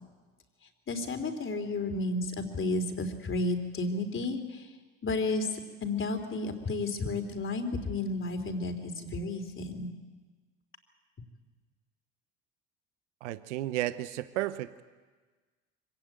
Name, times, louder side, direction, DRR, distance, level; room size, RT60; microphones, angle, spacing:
voice 1, 0.9-4.7 5.0-9.9, left 2 dB, 35° left, 6 dB, 3.7 m, -32 dB
voice 2, 13.2-14.8, right 15 dB, 75° right, 14 dB, 0.9 m, -33 dB
25.0 x 17.0 x 8.9 m, 1.4 s
hypercardioid pair, 65°, 36 cm